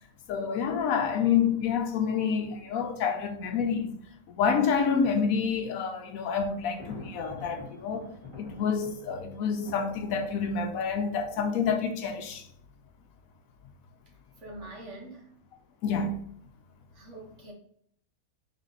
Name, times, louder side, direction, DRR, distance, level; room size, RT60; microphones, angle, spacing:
voice 1, 0.3-3.9 4.3-8.1 8.4-12.4 15.8-16.2, left 6 dB, 75° left, 1.0 m, -28 dB
Thunder, 6.6-12.4, left 3 dB, 20° right, 2.0 m, -47 dB
voice 2, 14.4-15.3 16.9-17.5, right 2 dB, 55° right, 1.5 m, -44 dB
3.6 x 3.5 x 3.9 m
omnidirectional pair, 1.6 m